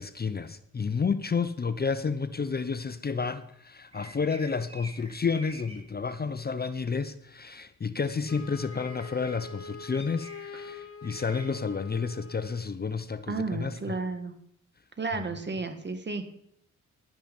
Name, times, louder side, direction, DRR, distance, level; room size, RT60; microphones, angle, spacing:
voice 1, 0.0-14.0, left 5 dB, 30° left, 0.7 m, -31 dB
sound 1, 3.9-5.8 8.3-8.4 8.7-9.3 9.9-10.6 11.0-11.4, right 1 dB, 20° right, 3.7 m, -48 dB
Wind instrument woodwind instrument, 8.3-12.7, left 4 dB, 45° left, 1.0 m, -44 dB
voice 2, 13.3-14.3 15.0-16.3, right 3 dB, 35° right, 1.9 m, -32 dB
11.5 x 9.0 x 5.4 m
cardioid pair, 65°, 31 cm